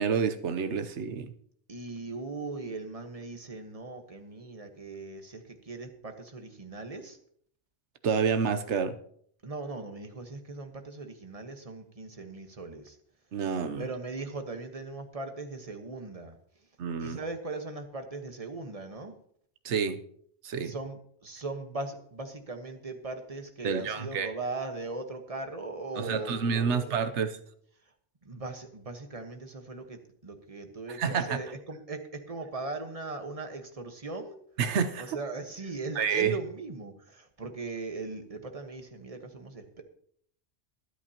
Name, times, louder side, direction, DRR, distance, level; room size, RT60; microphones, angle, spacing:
voice 1, 0.0-1.3 8.0-9.0 13.3-13.9 16.8-17.2 19.6-20.0 20.4-20.7 23.6-24.3 26.0-27.4 30.9-31.4 34.6-35.2 36.0-36.3, right 6 dB, 90° right, 10 dB, 1.1 m, -28 dB
voice 2, 1.7-7.2 9.4-13.0 13.8-16.4 17.0-19.1 20.6-27.1 28.2-34.4 35.0-39.8, right 3 dB, 30° right, 6 dB, 1.4 m, -39 dB
23.0 x 8.3 x 2.9 m, 0.64 s
omnidirectional pair, 1.1 m